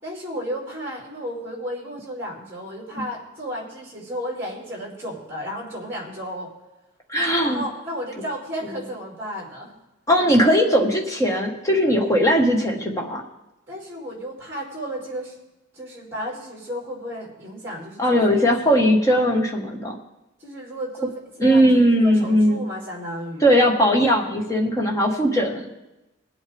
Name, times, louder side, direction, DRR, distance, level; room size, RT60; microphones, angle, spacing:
voice 1, 0.0-6.5 7.4-9.7 13.7-15.4 15.7-19.0 20.4-21.6 22.0-23.6, equal, 10° right, -4 dB, 4.8 m, -33 dB
voice 2, 7.1-7.6 10.1-13.2 18.0-19.9 21.4-22.7 23.4-25.6, equal, 15° left, 0 dB, 1.5 m, -19 dB
22.5 x 8.1 x 3.5 m, 0.99 s
head